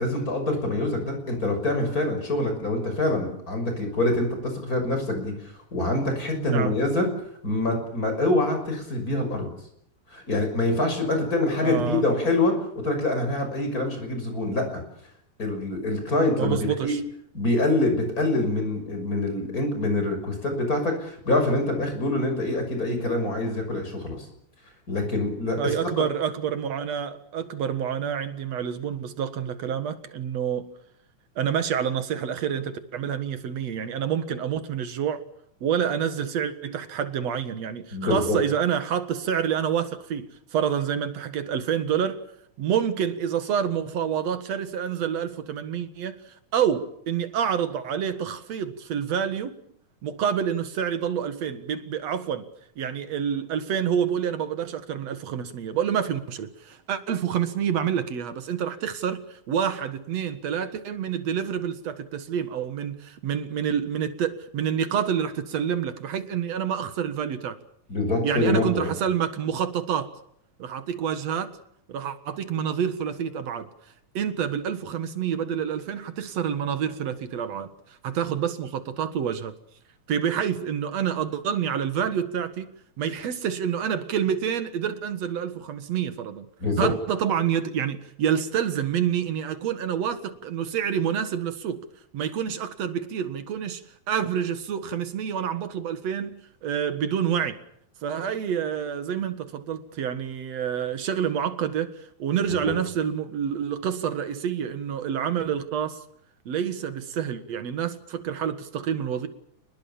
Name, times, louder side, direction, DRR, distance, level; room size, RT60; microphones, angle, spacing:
voice 1, 0.0-5.3 5.7-7.1 7.4-9.5 10.1-12.5 12.8-14.8 15.4-16.6 16.8-16.9 17.3-24.2 24.9-26.0 37.9-38.4 67.9-68.9 86.6-86.9 102.4-102.7, left 2 dB, 30° left, 6.6 m, -25 dB
voice 2, 6.4-6.7 11.6-12.0 16.4-17.0 25.6-30.7 31.4-35.2 35.6-42.2 42.6-46.2 46.5-49.5 50.0-52.5 52.8-67.6 68.2-70.1 70.6-71.6 71.9-73.7 74.1-77.7 78.0-79.5 80.1-86.5 86.8-91.8 92.1-93.8 94.1-97.6 98.0-106.0 106.5-109.3, right 8 dB, 65° right, 2.7 m, -28 dB
29.0 x 20.5 x 7.2 m
omnidirectional pair, 3.3 m